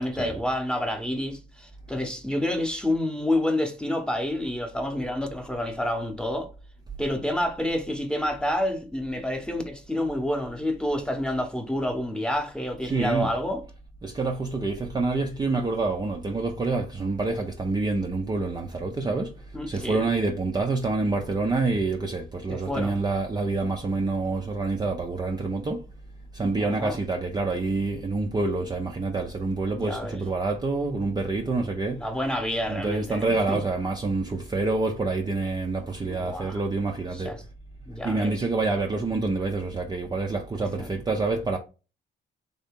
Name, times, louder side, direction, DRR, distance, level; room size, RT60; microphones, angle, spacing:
voice 1, 0.0-6.5 7.0-13.6 19.5-20.1 22.5-23.0 26.6-27.0 29.8-30.2 32.0-33.6 36.1-36.6 37.2-37.4 37.9-38.3 40.8-40.9, left 1 dB, 5° left, 0.9 m, -28 dB
voice 2, 12.8-13.3 14.0-25.8 26.3-32.1 32.7-37.3 38.0-41.6, right 3 dB, 20° right, 0.5 m, -27 dB
3.3 x 2.7 x 3.6 m
cardioid pair, 90°, 20 cm